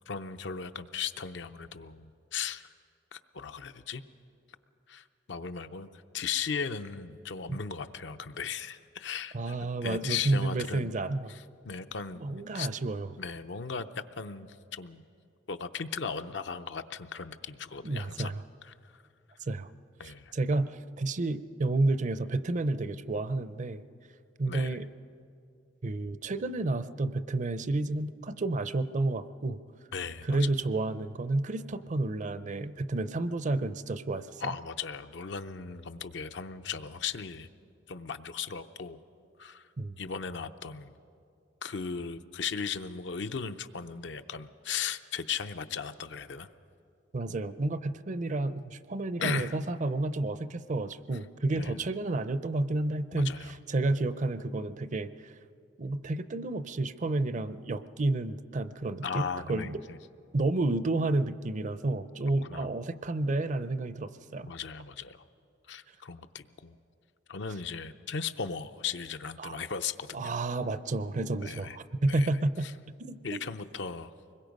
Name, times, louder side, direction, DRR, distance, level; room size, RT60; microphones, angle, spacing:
voice 1, 0.1-2.7 3.1-4.0 4.9-5.9 6.1-9.6 9.8-10.9 11.3-12.7 13.2-15.1 15.5-18.3 18.6-19.0 20.0-20.3 24.5-24.8 29.9-30.5 34.4-37.5 37.9-39.0 39.4-39.7 40.0-40.9 41.6-46.5 49.2-49.6 51.6-51.8 53.1-53.5 59.0-60.0 62.5-62.7 64.5-65.2 65.7-66.8 67.3-70.4 71.4-71.8 72.0-72.3 72.6-72.7 73.2-74.1, left 6 dB, 70° left, 10 dB, 0.6 m, -37 dB
voice 2, 9.3-11.3 12.2-13.1 17.8-18.4 19.4-19.7 20.3-23.8 24.4-24.9 25.8-29.6 30.3-34.5 39.8-40.0 47.1-53.3 53.7-55.3 55.8-59.2 59.5-59.8 60.3-64.5 69.4-69.6 70.1-72.7 73.0-73.4, right 2 dB, 40° right, 14 dB, 0.5 m, -30 dB
24.5 x 21.5 x 5.3 m, 2.5 s
head